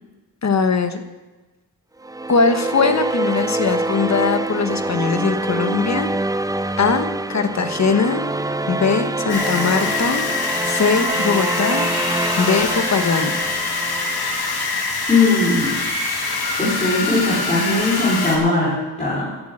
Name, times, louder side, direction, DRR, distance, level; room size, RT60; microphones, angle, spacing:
voice 1, 0.4-1.0 2.3-6.1 6.8-8.2 8.7-10.2 10.6-11.9 12.4-13.3, left 5 dB, 40° left, 8 dB, 1.2 m, -20 dB
sound 1, 2.0-14.4, right 2 dB, 10° right, 0.4 m, -25 dB
sound 2, 9.3-18.4, left 3 dB, 65° left, 2.6 m, -24 dB
voice 2, 15.1-15.8 16.6-19.3, left 3 dB, 15° left, -10 dB, 4.2 m, -19 dB
14.5 x 7.5 x 7.7 m, 1.2 s
wide cardioid pair, 130°, 40 cm